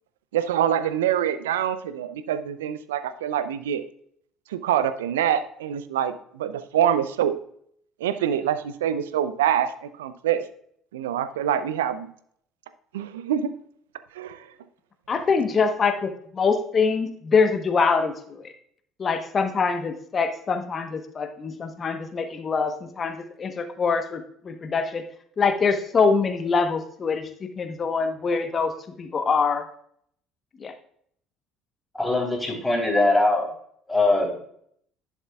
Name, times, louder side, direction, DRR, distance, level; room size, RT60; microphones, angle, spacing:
voice 1, 0.3-3.8 4.5-7.4 8.0-10.4 10.9-12.1 12.9-13.5 14.1-14.4, right 9 dB, 80° right, 13 dB, 0.5 m, -25 dB
voice 2, 15.1-18.5 19.0-25.0 25.4-28.7 29.0-29.7 30.6-30.7, left 5 dB, 35° left, 7 dB, 1.0 m, -24 dB
voice 3, 31.9-33.5 33.9-34.3, left 2 dB, 10° left, -1 dB, 3.8 m, -21 dB
11.0 x 7.2 x 2.3 m, 0.66 s
hypercardioid pair, 60°, 0 cm